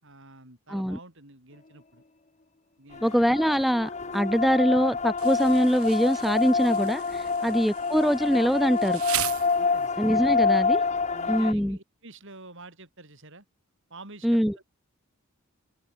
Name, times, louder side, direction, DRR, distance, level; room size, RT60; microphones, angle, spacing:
voice 1, 0.0-2.0 2.8-3.2 9.6-10.0 11.1-13.5 13.9-14.6, right 2 dB, 60° right, 6.8 m, -48 dB
sound 1, 2.9-11.5, left 4 dB, 30° left, 1.2 m, -27 dB
voice 2, 3.0-9.0 10.0-10.8 11.3-11.8 14.2-14.5, equal, ahead, 1.4 m, -23 dB
Insect, 5.2-10.1, right 13 dB, 85° right, 2.5 m, -37 dB
head